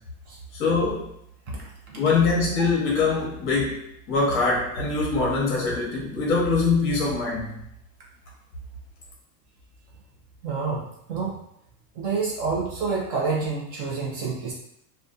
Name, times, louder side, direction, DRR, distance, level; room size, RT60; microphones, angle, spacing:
voice 1, 0.5-1.1 2.0-7.6, left 4 dB, 25° left, -3 dB, 0.8 m, -23 dB
voice 2, 10.4-11.3 12.0-14.5, right 4 dB, 40° right, -3 dB, 0.5 m, -28 dB
2.5 x 2.2 x 2.4 m, 0.75 s
supercardioid pair, 140°, 47 cm